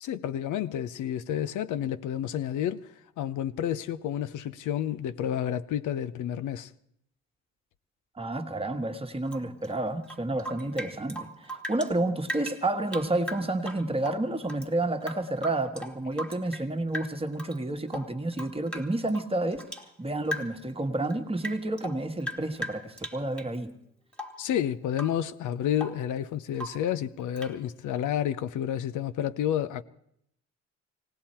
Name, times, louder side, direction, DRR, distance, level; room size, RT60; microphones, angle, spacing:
voice 1, 0.0-2.9 3.2-6.7 24.4-29.8, left 10 dB, 80° left, 0.7 m, -30 dB
voice 2, 8.2-19.7 20.0-23.7, right 2 dB, 20° right, 1.4 m, -30 dB
Rain / Drip, 9.3-11.9 12.2-14.7 15.0-16.7 16.9-17.6 17.9-19.9 20.2-20.7 21.0-23.5 24.1-24.5 24.9-25.2 25.5-26.1 26.5-26.9 27.4-27.6, equal, 5° left, 1.5 m, -39 dB
18.0 x 17.5 x 4.4 m
cardioid pair, 90°, 30 cm